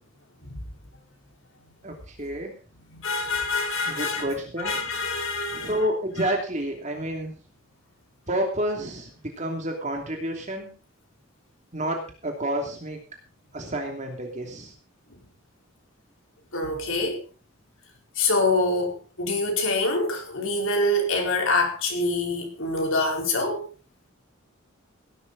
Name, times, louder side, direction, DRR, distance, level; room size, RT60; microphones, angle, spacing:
voice 1, 1.8-2.5 3.9-4.8 5.5-7.4 8.3-10.7 11.7-13.0 13.5-14.7, right 1 dB, 35° right, 2.9 m, -29 dB
voice 2, 2.9-4.3 4.6-5.7 16.5-17.2 18.2-23.7, left 2 dB, 75° left, 4.6 m, -25 dB
17.0 x 12.5 x 4.1 m
head